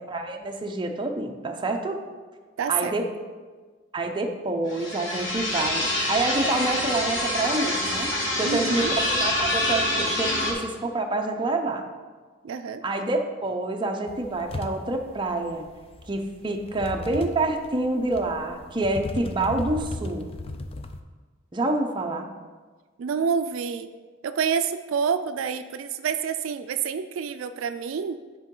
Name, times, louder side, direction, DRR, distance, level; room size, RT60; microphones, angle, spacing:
voice 1, 0.1-2.0 2.7-3.0 3.9-11.8 12.8-15.7 16.1-20.3 21.5-22.3, right 2 dB, 25° right, 3 dB, 0.6 m, -27 dB
voice 2, 2.6-2.9 8.4-9.0 12.4-12.8 23.0-23.9 24.2-28.2, right 6 dB, 80° right, 10 dB, 0.4 m, -28 dB
sound 1, 4.7-10.5, left 1 dB, 70° left, 1.4 m, -26 dB
sound 2, 14.1-21.0, left 2 dB, 30° left, 0.4 m, -36 dB
10.0 x 4.5 x 3.8 m, 1.4 s
head